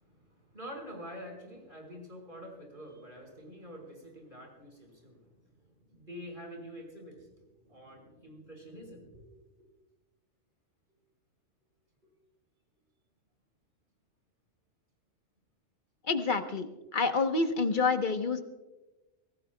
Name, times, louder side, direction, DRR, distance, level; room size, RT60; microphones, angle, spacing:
voice 1, 0.0-9.3 9.6-9.7 12.0-12.1, equal, 45° right, 1 dB, 5.2 m, -47 dB
voice 2, 16.1-18.4, left 4 dB, 45° left, 7 dB, 1.2 m, -28 dB
25.0 x 17.5 x 2.3 m, 1.1 s
omnidirectional pair, 1.2 m